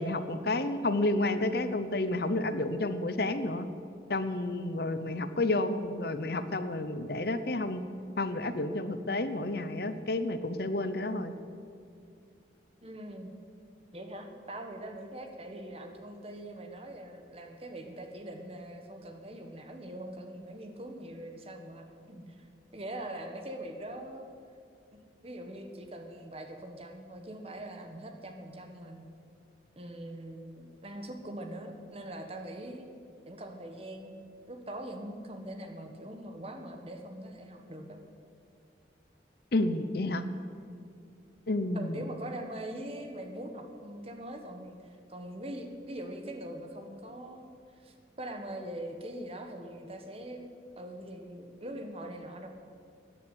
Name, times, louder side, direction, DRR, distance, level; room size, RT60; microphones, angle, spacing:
voice 1, 0.0-3.7 4.1-7.8 8.2-11.3 39.5-40.2 41.5-42.0, left 2 dB, 55° left, 11 dB, 0.8 m, -30 dB
voice 2, 12.8-13.3 13.9-22.5 22.7-24.3 24.9-29.1 29.7-32.9 33.2-38.0 41.7-44.8 45.1-50.5 50.8-52.5, right 1 dB, 30° right, 5 dB, 1.5 m, -42 dB
14.0 x 9.7 x 9.9 m, 2.3 s
head